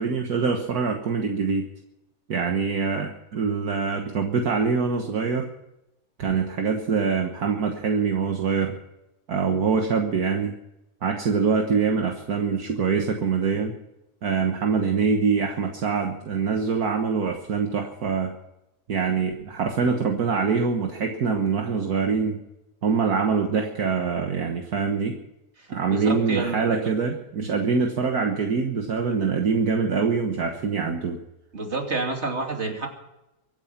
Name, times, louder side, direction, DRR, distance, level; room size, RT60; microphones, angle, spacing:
voice 1, 0.0-1.7 2.3-5.5 6.2-8.7 9.3-10.5 11.0-13.8 14.2-18.3 18.9-22.4 22.8-25.2 25.7-31.2, right 5 dB, 65° right, 3 dB, 1.8 m, -24 dB
voice 2, 25.6-26.9 27.4-27.5 31.5-32.9, right 3 dB, 40° right, 2 dB, 3.0 m, -29 dB
24.0 x 9.4 x 5.8 m, 0.91 s
omnidirectional pair, 1.7 m